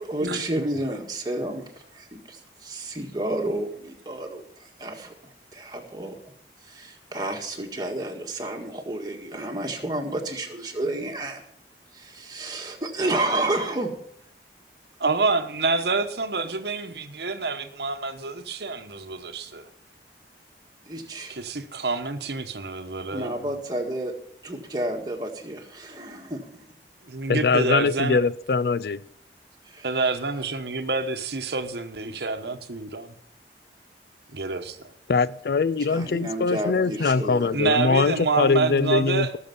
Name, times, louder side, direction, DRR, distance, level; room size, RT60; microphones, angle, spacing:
voice 1, 0.0-1.7 1.9-5.1 5.5-6.2 6.6-11.4 11.9-13.9 20.9-21.3 23.1-24.1 24.4-26.4 29.7-29.9 32.0-32.5 35.9-37.5, right 1 dB, 25° right, 1 dB, 1.8 m, -31 dB
voice 2, 15.0-19.6 21.3-23.5 27.1-28.2 29.8-33.1 34.3-34.9 37.5-39.3, right 4 dB, 70° right, 8 dB, 1.0 m, -27 dB
voice 3, 27.3-29.0 35.1-39.4, left 4 dB, 65° left, 18 dB, 0.4 m, -22 dB
18.0 x 6.8 x 5.4 m, 0.71 s
head